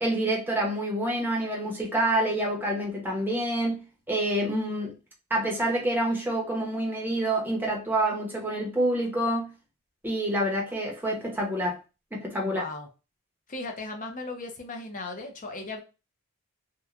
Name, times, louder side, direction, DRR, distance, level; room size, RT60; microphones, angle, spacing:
voice 1, 0.0-4.9 5.3-9.5 10.0-11.8 12.1-12.6, right 1 dB, 10° right, 0.7 m, -27 dB
voice 2, 12.4-12.9 13.5-15.8, left 2 dB, 35° left, 0.6 m, -37 dB
3.0 x 2.2 x 2.4 m
head